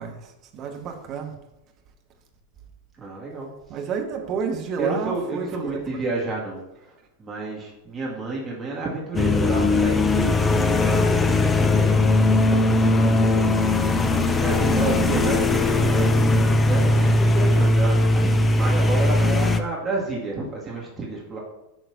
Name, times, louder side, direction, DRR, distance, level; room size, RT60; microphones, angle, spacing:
voice 1, 0.0-1.3 3.7-5.8 15.2-15.4, right 6 dB, 35° right, 3 dB, 1.2 m, -30 dB
voice 2, 3.0-3.8 4.8-13.9 14.4-21.4, right 3 dB, 15° right, -5 dB, 2.2 m, -30 dB
sound 1, 9.1-19.6, left 2 dB, 15° left, 0.6 m, -19 dB
11.0 x 6.0 x 2.8 m, 0.92 s
figure-of-eight pair, 90°, 0 cm